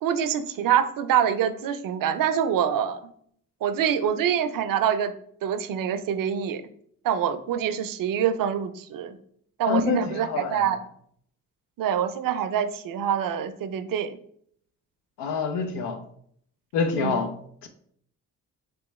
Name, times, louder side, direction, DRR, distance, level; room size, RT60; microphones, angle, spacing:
voice 1, 0.0-3.0 3.6-5.1 5.4-6.6 7.0-9.2 9.6-10.8 11.8-14.2 17.0-17.2, right 9 dB, 60° right, 0.5 m, -25 dB
voice 2, 9.7-10.6 15.2-16.0 16.7-17.3, left 5 dB, 90° left, 0.5 m, -26 dB
3.4 x 3.1 x 3.0 m
supercardioid pair, 50°, 39 cm